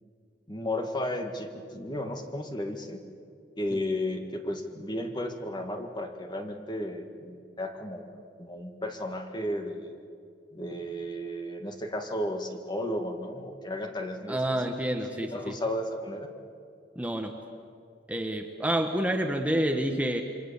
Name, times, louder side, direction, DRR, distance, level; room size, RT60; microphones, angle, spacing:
voice 1, 0.5-3.0 3.6-10.0 10.5-14.4 15.2-16.3, left 1 dB, 25° left, 4 dB, 1.9 m, -34 dB
voice 2, 14.3-15.5 16.9-17.3 18.1-20.2, right 1 dB, 10° right, 4 dB, 1.2 m, -28 dB
28.0 x 24.0 x 7.1 m, 2.5 s
head